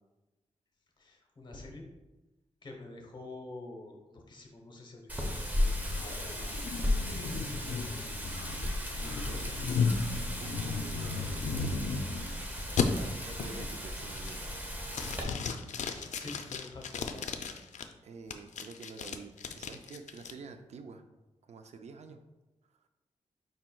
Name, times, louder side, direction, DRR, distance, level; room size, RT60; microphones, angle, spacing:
voice 1, 1.0-1.9 2.6-6.6 7.0-8.2 15.9-17.2, left 2 dB, 40° left, 1 dB, 0.8 m, -48 dB
Wind, 5.1-15.2, left 1 dB, 15° right, 0.7 m, -35 dB
sound 1, 5.9-12.3 12.8-12.9 13.4-13.7 14.1-14.6 14.9-17.8 18.3-20.3, left 5 dB, 80° left, 0.4 m, -35 dB
voice 2, 8.8-9.6 10.4-11.4 11.7-12.5 12.9-14.5 18.0-21.0 21.4-22.2, right 4 dB, 65° right, 7 dB, 0.4 m, -48 dB
5.1 x 4.3 x 2.3 m, 1.1 s
wide cardioid pair, 130°, 12 cm